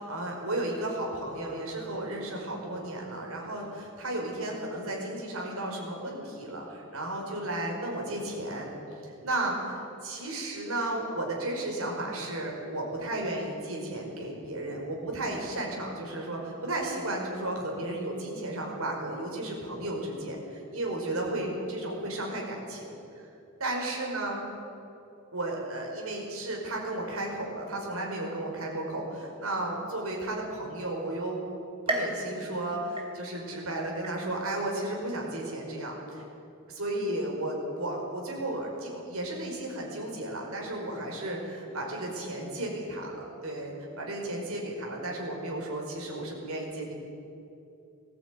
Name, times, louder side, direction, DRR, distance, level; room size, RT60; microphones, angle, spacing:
voice 1, 0.0-8.7 9.0-23.3 23.6-24.5 25.3-31.4 31.9-36.2 36.7-46.9, right 1 dB, 75° right, -1 dB, 5.2 m, -34 dB
sound 1, 31.9-33.6 34.0-34.6 35.1-35.2 36.2-36.3, right 2 dB, 25° right, 3.1 m, -35 dB
19.5 x 14.0 x 9.3 m, 2.8 s
head